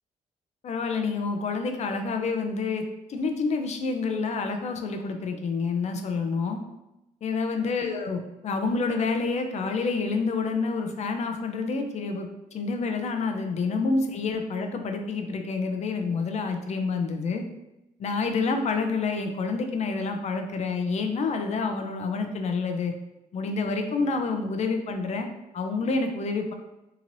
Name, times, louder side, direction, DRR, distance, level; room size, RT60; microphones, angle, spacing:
voice 1, 0.6-2.8 3.1-6.6 7.2-17.4 18.0-22.9 23.3-25.3 25.5-26.5, left 4 dB, 50° left, 5 dB, 0.4 m, -28 dB
2.8 x 2.5 x 3.0 m, 0.94 s
cardioid pair, 85°, 14 cm